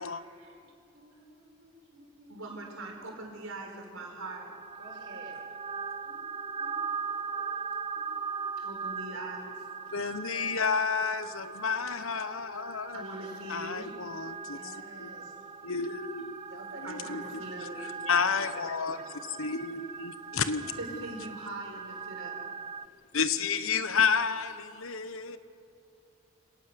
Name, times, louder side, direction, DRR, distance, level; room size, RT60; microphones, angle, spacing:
voice 1, 0.6-3.3 4.8-5.4 5.7-8.6 14.5-15.4 16.5-19.1 20.5-21.0, right 1 dB, 60° right, 4.8 m, -52 dB
voice 2, 2.3-4.5 8.6-9.5 12.9-13.9 16.8-17.8 20.8-22.4, right 2 dB, 85° right, 4.7 m, -42 dB
sound 1, 4.2-22.9, right 5 dB, 25° right, 0.4 m, -40 dB
voice 3, 9.9-13.0 13.5-15.1 15.6-16.3 16.8-17.2 17.6-19.0 19.3-21.0 23.1-25.4, left 5 dB, 80° left, 1.1 m, -31 dB
25.0 x 18.5 x 6.9 m
head